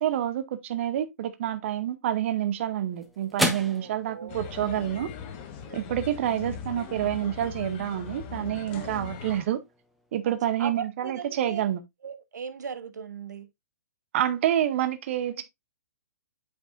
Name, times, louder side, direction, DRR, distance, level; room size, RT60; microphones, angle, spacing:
voice 1, 0.0-5.1 5.7-9.6 10.1-11.8 14.1-15.4, right 11 dB, 45° right, 0.7 m, -28 dB
sound 1, 2.1-10.7, equal, ahead, 0.9 m, -38 dB
voice 2, 3.7-4.5 5.7-5.8 8.7-9.1 10.6-11.6 12.0-13.5 15.4-15.5, right 6 dB, 90° right, 0.9 m, -38 dB
sound 2, 4.3-9.4, left 7 dB, 35° left, 1.2 m, -39 dB
8.5 x 4.9 x 2.5 m
hypercardioid pair, 155°, 9 cm